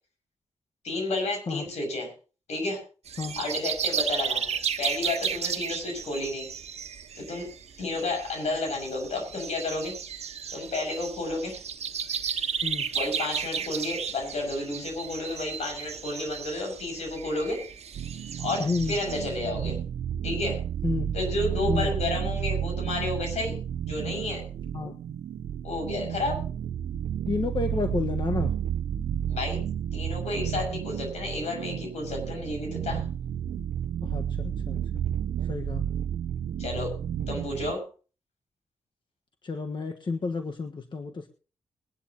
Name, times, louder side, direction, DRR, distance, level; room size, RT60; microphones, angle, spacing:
voice 1, 0.8-2.1 2.5-2.8 3.4-6.5 7.1-7.5 7.8-10.0 10.5-11.6 12.9-17.6 18.4-19.8 20.2-20.6 21.1-23.6 23.9-24.4 25.6-26.4 29.3-29.6 29.9-33.0 36.6-36.9 37.3-37.8, left 2 dB, 80° left, 3 dB, 6.6 m, -31 dB
sound 1, 3.1-19.4, right 7 dB, 70° right, 1.2 m, -34 dB
sound 2, 17.9-37.7, right 9 dB, 85° right, 0.6 m, -31 dB
voice 2, 18.6-19.0 20.8-21.1 21.7-21.9 24.7-24.9 27.3-28.5 34.0-34.8 35.5-35.8 39.4-41.3, left 4 dB, 45° left, 5 dB, 1.4 m, -30 dB
22.0 x 11.0 x 3.0 m, 0.37 s
cardioid pair, 55°, 11 cm